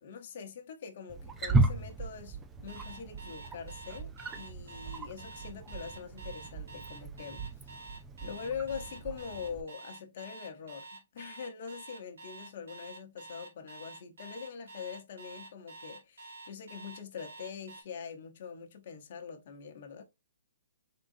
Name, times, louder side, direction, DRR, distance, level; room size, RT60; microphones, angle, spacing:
voice 1, 0.0-7.4 8.2-20.0, left 6 dB, 50° left, 0.9 m, -43 dB
Wild animals, 1.1-9.6, right 2 dB, 10° right, 0.4 m, -35 dB
Alarm, 2.7-17.8, right 3 dB, 80° right, 1.5 m, -48 dB
3.7 x 3.7 x 2.6 m
hypercardioid pair, 155°, 0 cm